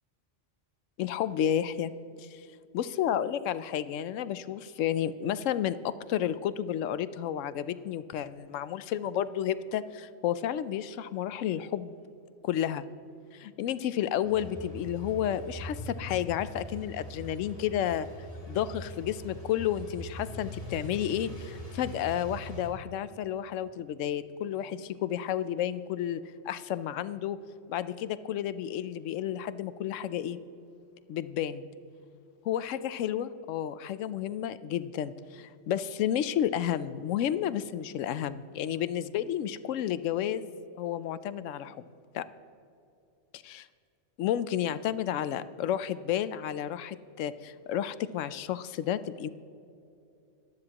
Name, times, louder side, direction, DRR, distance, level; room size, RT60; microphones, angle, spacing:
voice 1, 1.0-1.9 2.2-2.4 2.7-12.0 12.4-12.9 13.3-18.1 18.5-26.2 26.5-27.4 27.7-30.4 31.1-31.7 32.5-40.5 40.8-41.8 42.1-42.2 43.3-43.7 44.2-49.3, left 10 dB, 85° left, 15 dB, 0.9 m, -31 dB
sound 1, 14.2-22.7, equal, 30° left, 1.9 m, -42 dB
18.0 x 12.5 x 2.9 m, 2.6 s
omnidirectional pair, 1.3 m